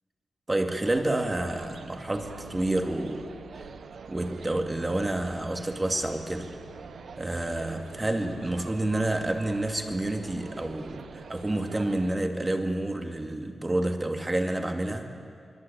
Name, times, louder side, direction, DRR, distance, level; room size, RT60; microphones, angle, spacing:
voice 1, 0.5-3.3 3.5-3.7 4.1-6.5 7.2-15.1, right 1 dB, 20° right, 4 dB, 2.2 m, -29 dB
sound 1, 0.8-12.2, right 6 dB, 70° right, 0.9 m, -45 dB
sound 2, 1.7-11.6, left 2 dB, 65° left, 3.6 m, -53 dB
26.0 x 24.0 x 8.7 m, 2.3 s
wide cardioid pair, 140°, 0 cm